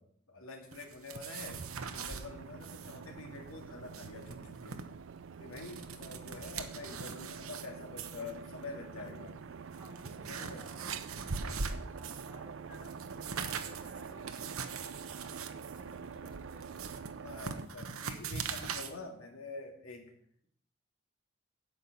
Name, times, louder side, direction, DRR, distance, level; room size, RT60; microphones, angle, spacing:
voice 1, 0.0-1.6 1.9-4.8 5.4-9.3 10.3-10.7 17.2-20.1, left 3 dB, 80° left, 2 dB, 2.2 m, -46 dB
sound 1, 0.7-2.2 2.6-3.0 3.2-3.3 3.7-4.8 5.3-7.7 8.0-8.3 9.1-9.2 9.7-12.4 12.7-18.9, right 5 dB, 85° right, 1.1 m, -41 dB
sound 2, 1.4-17.7, right 6 dB, 60° right, 0.4 m, -46 dB
voice 2, 9.7-11.1 11.9-17.4, right 1 dB, 5° right, -2 dB, 2.4 m, -56 dB
9.5 x 5.8 x 8.3 m, 0.66 s
head